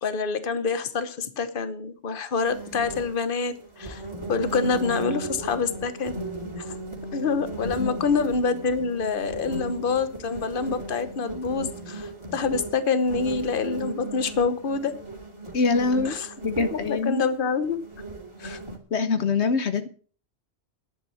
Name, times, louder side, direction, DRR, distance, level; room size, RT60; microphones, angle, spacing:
voice 1, 0.0-4.0 4.3-6.1 6.6-6.8 7.1-14.9 16.0-16.3 16.6-17.8 18.4-18.6, left 5 dB, 55° left, 11 dB, 1.3 m, -26 dB
sound 1, 2.4-18.8, right 2 dB, 25° right, 2.6 m, -36 dB
voice 2, 15.5-16.2 16.4-17.2 18.4-18.6 18.9-19.9, left 4 dB, 75° left, 10 dB, 1.3 m, -24 dB
11.0 x 9.0 x 7.0 m, 0.41 s
omnidirectional pair, 1.1 m